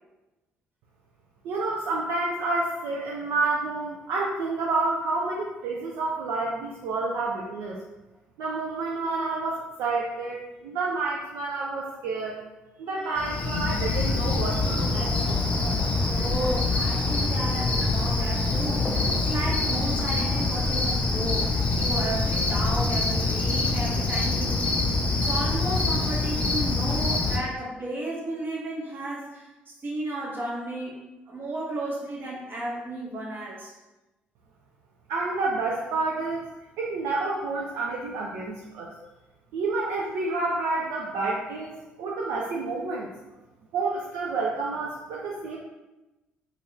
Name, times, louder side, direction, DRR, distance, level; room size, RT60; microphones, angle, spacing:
voice 1, 1.4-7.8 8.4-12.4 12.8-15.1 35.1-36.5 36.8-38.9 39.5-43.1 43.7-45.6, right 3 dB, 65° right, -3 dB, 0.4 m, -29 dB
sound 1, 12.9-19.9, left 3 dB, 70° left, 0.5 m, -42 dB
Cricket, 13.2-27.4, left 3 dB, 25° left, 0.6 m, -25 dB
voice 2, 16.1-31.0 31.3-33.7, right 1 dB, 40° right, -3 dB, 0.9 m, -33 dB
2.9 x 2.4 x 3.1 m, 1.1 s
hypercardioid pair, 50°, 5 cm